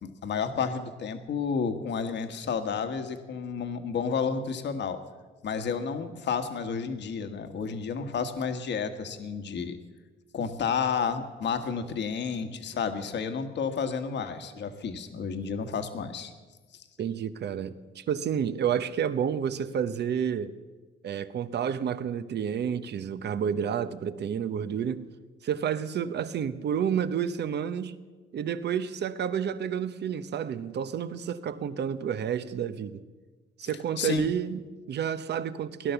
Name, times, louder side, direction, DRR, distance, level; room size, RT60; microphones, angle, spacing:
voice 1, 0.0-5.0 5.4-9.8 10.3-16.3 16.7-16.8 34.0-34.3, left 6 dB, 60° left, 1.4 m, -31 dB
voice 2, 17.0-20.5 21.0-25.0 25.4-28.0 28.3-33.0 33.6-35.9, right 8 dB, 60° right, 0.9 m, -30 dB
17.5 x 11.5 x 7.0 m
cardioid pair, 90°, 20 cm